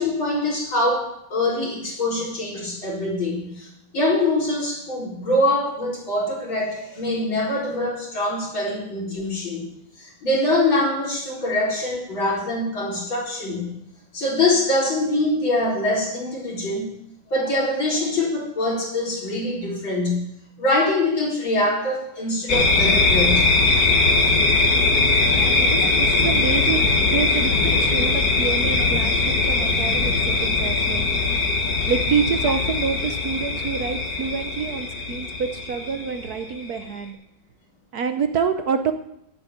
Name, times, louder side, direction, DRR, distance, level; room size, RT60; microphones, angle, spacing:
voice 1, 0.0-3.7 3.9-9.7 10.0-13.7 14.1-16.9 17.3-20.3 20.6-23.5 29.6-29.7 31.5-31.6, left 1 dB, 75° left, -4 dB, 4.8 m, -24 dB
sound 1, 22.5-36.8, left 3 dB, 50° left, 2.1 m, -20 dB
voice 2, 25.3-31.1 31.9-37.2 37.9-38.9, right 6 dB, 65° right, 8 dB, 1.1 m, -27 dB
11.5 x 8.9 x 7.9 m, 0.77 s
omnidirectional pair, 2.1 m